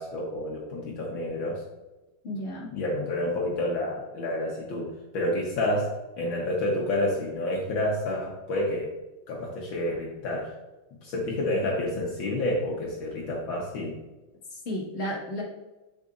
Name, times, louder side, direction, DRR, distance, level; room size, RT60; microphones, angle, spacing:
voice 1, 0.0-1.6 2.7-8.9 9.3-10.5 11.0-14.0, left 1 dB, 65° left, -2 dB, 1.7 m, -29 dB
voice 2, 2.2-2.7 14.5-15.4, left 1 dB, 30° left, -4 dB, 1.9 m, -33 dB
7.5 x 6.7 x 2.5 m, 1.1 s
omnidirectional pair, 2.4 m